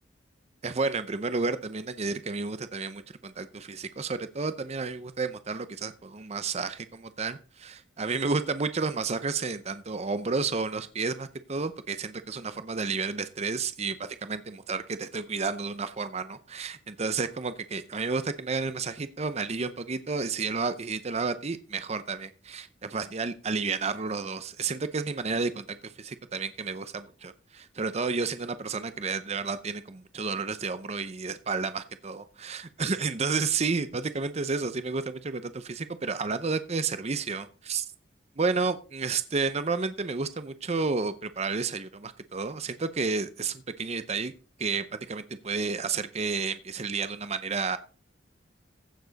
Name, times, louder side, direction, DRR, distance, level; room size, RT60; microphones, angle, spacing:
voice 1, 0.6-37.9 38.4-44.3 44.6-47.8, right 4 dB, 35° right, 12 dB, 0.6 m, -31 dB
15.5 x 7.2 x 4.0 m, 0.36 s
head